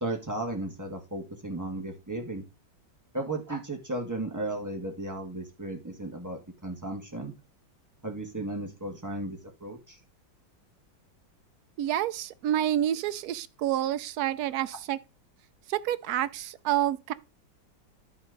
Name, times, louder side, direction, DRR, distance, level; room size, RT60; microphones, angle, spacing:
voice 1, 0.0-2.4 3.1-7.3 8.0-10.0, right 2 dB, 10° right, 1.6 m, -35 dB
voice 2, 11.8-15.0 15.7-17.1, right 12 dB, 70° right, 1.0 m, -28 dB
12.0 x 4.4 x 4.0 m
omnidirectional pair, 2.0 m